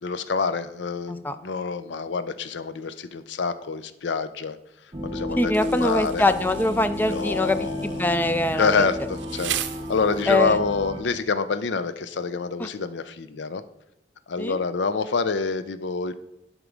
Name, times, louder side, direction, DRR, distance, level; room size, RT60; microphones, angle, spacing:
voice 1, 0.0-4.6 5.0-6.2 7.0-8.0 8.5-9.5 9.9-13.6 14.3-16.1, left 4 dB, 90° left, 12 dB, 0.5 m, -27 dB
sound 1, 4.9-11.0, left 1 dB, 30° right, 0.9 m, -32 dB
voice 2, 5.4-8.9 10.3-10.6 12.6-12.7 14.4-14.6, left 1 dB, 10° left, 11 dB, 0.4 m, -23 dB
Insect, 5.5-10.5, right 11 dB, 90° right, 0.5 m, -37 dB
11.0 x 3.7 x 5.1 m, 0.86 s
head